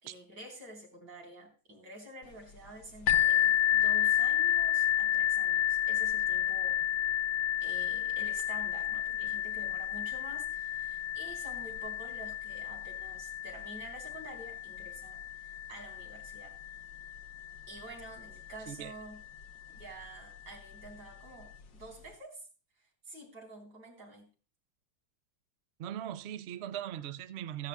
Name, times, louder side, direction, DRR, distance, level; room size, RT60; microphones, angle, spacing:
voice 1, 0.0-6.8 7.6-16.5 17.7-19.2 19.7-22.5 23.0-24.3, right 2 dB, 65° right, 4.5 m, -49 dB
sound 1, 3.1-18.6 19.4-19.5 20.0-20.1, left 11 dB, 85° left, 1.7 m, -31 dB
voice 2, 25.8-27.7, right 11 dB, 80° right, 0.5 m, -39 dB
15.5 x 13.5 x 2.3 m
omnidirectional pair, 2.0 m